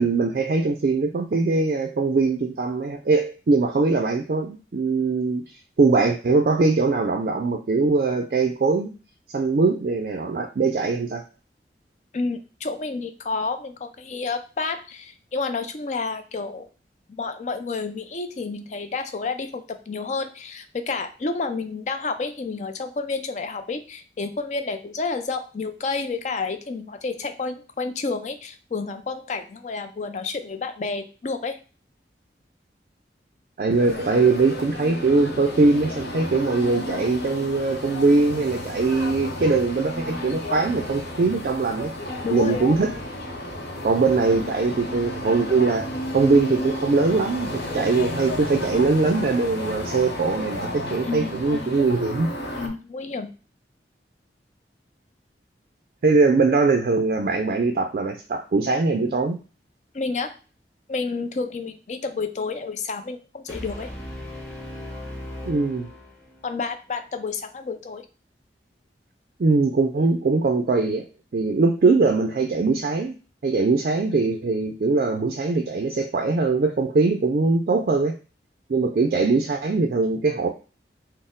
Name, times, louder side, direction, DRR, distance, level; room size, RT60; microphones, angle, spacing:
voice 1, 0.0-8.9 9.3-11.2 33.6-41.9 42.3-43.0 43.8-45.9 46.1-52.3 56.0-59.4 65.4-65.9 69.4-71.1 71.3-73.2 73.4-78.2 78.7-80.5, right 3 dB, 50° right, 5 dB, 0.4 m, -21 dB
voice 2, 12.1-16.7 17.1-31.6 42.2-42.8 51.0-51.8 52.6-53.3 59.9-60.4 60.9-63.9 66.4-68.0, left 4 dB, 40° left, 8 dB, 0.4 m, -30 dB
sound 1, 33.7-52.7, left 1 dB, 65° left, 0.9 m, -32 dB
Brass instrument, 63.5-66.6, left 1 dB, 10° left, 1.5 m, -37 dB
4.1 x 2.0 x 3.7 m, 0.34 s
head